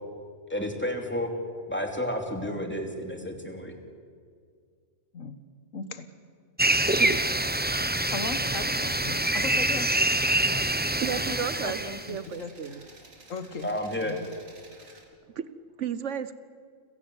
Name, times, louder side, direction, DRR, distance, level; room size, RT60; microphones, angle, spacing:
voice 1, 0.5-1.3 1.7-3.7 13.6-14.2, left 1 dB, 10° left, 3 dB, 2.9 m, -31 dB
voice 2, 5.7-6.1 8.1-10.8 11.3-11.4 11.6-11.7 12.1-12.5 13.3-13.7 14.0-14.2, left 4 dB, 80° left, 11 dB, 1.7 m, -37 dB
sound 1, 6.6-12.1, right 1 dB, 10° right, 0.5 m, -26 dB
sound 2, 8.0-15.0, right 2 dB, 85° right, 3.1 m, -52 dB
voice 3, 11.0-12.9 15.3-15.4 15.8-16.3, right 8 dB, 70° right, 14 dB, 1.2 m, -33 dB
29.5 x 16.5 x 8.2 m, 2.1 s
omnidirectional pair, 1.3 m